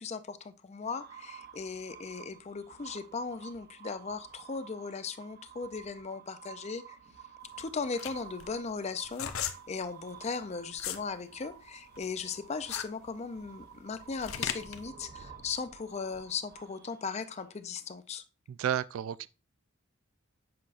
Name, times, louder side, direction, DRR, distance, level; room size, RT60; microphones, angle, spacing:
voice 1, 0.0-7.0 7.6-9.3 9.7-18.2, left 5 dB, 30° left, 0.4 m, -38 dB
sound 1, 0.8-17.9, right 8 dB, 45° right, 0.8 m, -52 dB
sound 2, 7.4-11.1 11.5-14.8, left 9 dB, 90° left, 0.6 m, -38 dB
voice 2, 18.5-19.3, right 10 dB, 80° right, 0.3 m, -31 dB
7.6 x 5.5 x 2.4 m
head